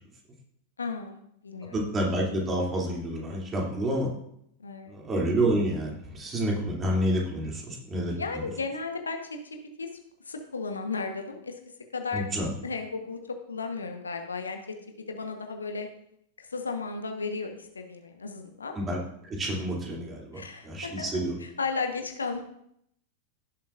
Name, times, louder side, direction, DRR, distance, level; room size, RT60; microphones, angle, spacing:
voice 1, 0.8-1.7 4.6-5.0 8.1-9.9 10.3-11.6 11.9-12.3 12.6-14.7 15.1-15.9 16.4-18.7 20.3-21.1 21.4-22.4, left 4 dB, 75° left, 5 dB, 1.1 m, -34 dB
voice 2, 1.6-4.1 4.9-8.4 12.1-12.5 18.7-19.0 19.3-21.3, right 1 dB, 20° right, -2 dB, 2.8 m, -29 dB
16.5 x 7.3 x 2.6 m, 0.72 s
figure-of-eight pair, 90°, 0 cm